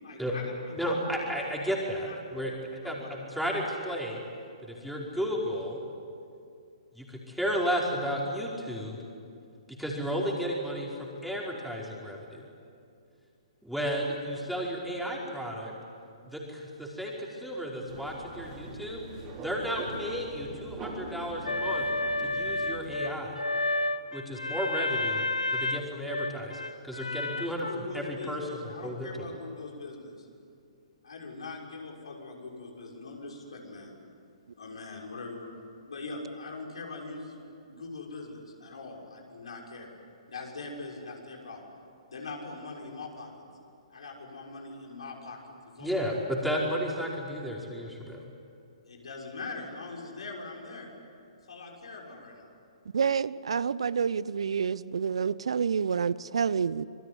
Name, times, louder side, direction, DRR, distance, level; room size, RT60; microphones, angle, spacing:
voice 1, 0.0-1.1 2.1-2.2 2.5-3.1 27.3-30.3 31.0-33.9 34.6-35.5 35.9-39.9 40.3-41.7 42.1-43.5 43.9-45.4 45.6-46.0 48.8-50.9 51.5-52.5, left 3 dB, 70° left, -1 dB, 6.5 m, -42 dB
voice 2, 0.8-4.2 4.7-5.8 6.9-9.0 9.7-12.4 13.6-15.7 16.2-19.0 19.4-21.8 22.2-23.3 24.1-25.2 25.5-29.3 45.8-48.2, equal, ahead, -3 dB, 5.0 m, -33 dB
sound 1, 17.9-23.0, right 2 dB, 25° right, 5.8 m, -43 dB
sound 2, 21.5-27.8, left 2 dB, 90° left, 0.9 m, -31 dB
voice 3, 52.9-56.8, right 6 dB, 65° right, 19 dB, 0.7 m, -28 dB
27.5 x 22.5 x 9.7 m, 2.4 s
figure-of-eight pair, 125°, 3 cm